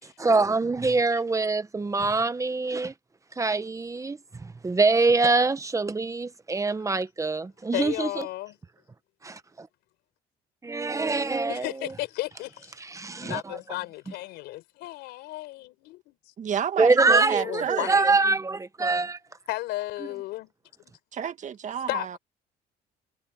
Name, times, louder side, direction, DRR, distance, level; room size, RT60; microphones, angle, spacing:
voice 1, 0.2-2.9 3.4-4.2 4.6-8.3 9.2-9.3 10.6-11.9 12.8-13.6 16.8-19.2, right 3 dB, 20° right, 1.2 m, -24 dB
voice 2, 7.7-8.6 11.5-12.7 13.2-16.2 17.4-18.1 19.5-20.5 21.9-22.2, left 18 dB, 90° left, 4.7 m, -34 dB
voice 3, 16.4-17.9 21.1-22.2, right 8 dB, 45° right, 1.7 m, -30 dB
cardioid pair, 110°, 17 cm